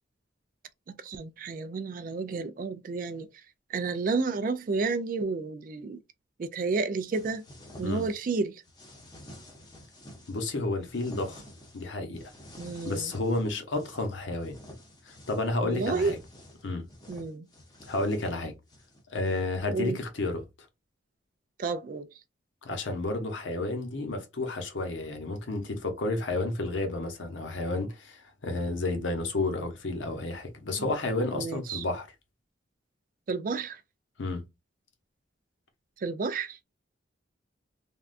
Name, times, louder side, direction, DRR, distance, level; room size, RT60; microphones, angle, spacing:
voice 1, 0.9-3.3 3.7-6.0 6.4-7.4 7.8-8.6 12.6-13.1 15.6-16.1 17.1-17.5 19.7-20.0 21.6-22.1 30.8-30.9 31.3-31.8 33.3-33.8 36.0-36.6, right 4 dB, 45° right, 0.3 m, -31 dB
sound 1, 7.1-8.3 8.6-10.5 10.8-11.9 12.2-14.1 14.4-19.5, left 1 dB, 20° left, 0.7 m, -50 dB
voice 2, 10.3-11.4 11.7-12.2 12.9-14.6 15.0-16.2 16.6-16.9 17.9-18.5 19.1-20.4 22.6-32.1 34.2-34.4, left 2 dB, 70° left, 0.8 m, -31 dB
3.5 x 2.3 x 2.5 m
head